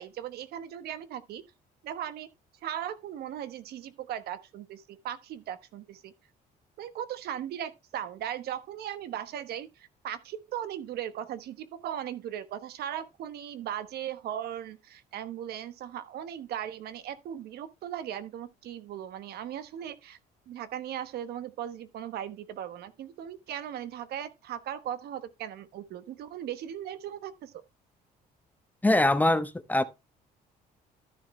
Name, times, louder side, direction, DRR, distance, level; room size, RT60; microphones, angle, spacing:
voice 1, 0.0-1.4 1.8-2.3 2.6-6.1 6.8-9.7 10.0-20.2 20.5-27.5, right 10 dB, 70° right, 1.1 m, -38 dB
voice 2, 28.8-29.8, left 1 dB, 10° left, 0.8 m, -23 dB
13.0 x 6.9 x 3.2 m
cardioid pair, 110°, 17 cm